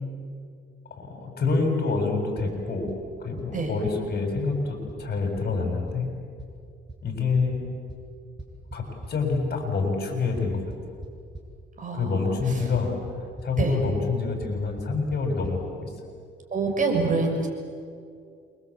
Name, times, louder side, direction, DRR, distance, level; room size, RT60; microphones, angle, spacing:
voice 1, 0.9-2.9 3.2-6.1 7.0-7.6 8.7-10.6 11.9-12.9 13.4-15.9, left 4 dB, 50° left, 3 dB, 7.0 m, -27 dB
sound 1, 2.4-2.5 2.9-3.0 3.4-3.5 3.9-4.0 4.4-4.5 4.9-5.0 5.4-5.5 5.9-6.0 6.4-6.5 6.9-7.0 7.4-7.5 7.9-8.0 8.4-9.4 10.4-11.4 12.4-12.5 12.7-13.1 13.4-13.5 14.4-14.5 14.8-14.9 15.1-15.2 15.4-15.5, right 2 dB, 20° right, 7.9 m, -39 dB
voice 2, 11.8-12.1 13.6-13.8 16.5-17.5, right 3 dB, 40° right, 2 dB, 6.5 m, -25 dB
28.5 x 24.5 x 8.5 m, 2.3 s
cardioid pair, 90°, 20 cm